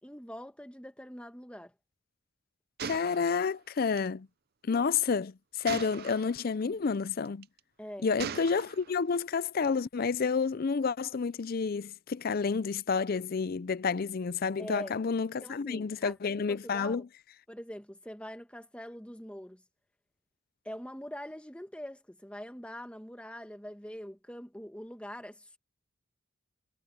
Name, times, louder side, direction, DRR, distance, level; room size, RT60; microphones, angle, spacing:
voice 1, 0.0-1.7 7.8-8.1 14.6-14.9 15.4-17.0 17.5-19.6 20.6-25.6, equal, 5° left, 1.4 m, -44 dB
voice 2, 2.8-4.3 4.6-7.5 8.0-17.0, left 5 dB, 45° left, 0.4 m, -30 dB
Gunshot gunfire, 2.8-4.1 5.7-6.4 7.2-7.6 8.2-9.0, right 7 dB, 45° right, 0.5 m, -40 dB
head